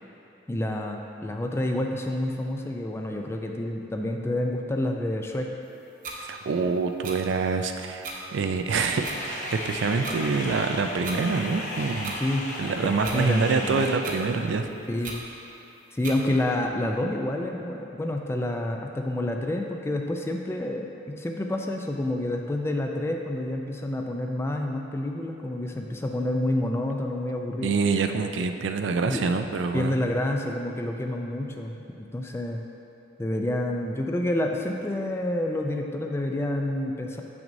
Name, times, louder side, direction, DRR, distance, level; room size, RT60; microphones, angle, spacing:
voice 1, 0.5-5.5 12.2-12.5 12.8-13.9 14.9-15.1 15.9-27.7 29.1-29.2 29.7-32.6 33.2-37.2, left 1 dB, 15° left, 2 dB, 0.3 m, -28 dB
sound 1, 6.0-6.2 7.0-7.2 8.0-8.2 9.0-9.2 10.0-10.2 11.0-11.2 12.0-12.2 13.0-13.2 14.0-14.2 15.0-15.2 16.0-16.2, right 4 dB, 45° right, 0.7 m, -35 dB
voice 2, 6.3-12.2 12.6-14.7 27.6-29.9, right 4 dB, 80° right, 6 dB, 0.4 m, -26 dB
sound 2, 8.7-13.9, left 1 dB, 40° left, 0.8 m, -35 dB
7.5 x 5.9 x 2.6 m, 2.9 s
head